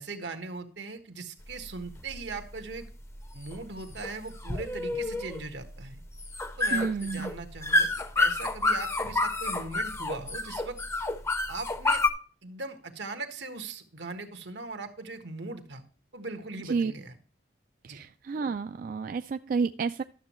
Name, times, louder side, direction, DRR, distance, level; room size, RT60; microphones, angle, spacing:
voice 1, 0.0-2.9 3.3-6.0 6.6-7.9 8.2-10.8 11.5-12.0 12.4-15.8 16.1-17.1 17.9-18.0, right 3 dB, 85° right, 7 dB, 1.4 m, -39 dB
sound 1, 1.4-12.1, left 2 dB, 15° left, 0.6 m, -29 dB
voice 2, 6.7-7.3 16.6-16.9 17.8-20.0, right 5 dB, 50° right, 9 dB, 0.3 m, -30 dB
12.0 x 7.2 x 3.0 m, 0.41 s
head